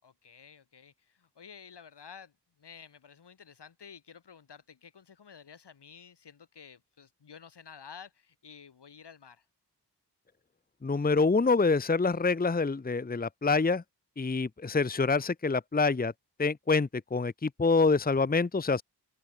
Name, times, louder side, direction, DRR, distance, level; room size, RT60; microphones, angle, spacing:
voice 1, 0.0-9.5, left 6 dB, 75° left, 3.8 m, -51 dB
voice 2, 10.8-13.8 14.2-16.1 16.4-18.8, left 4 dB, 20° left, 0.9 m, -26 dB
open air
cardioid pair, 65°, 41 cm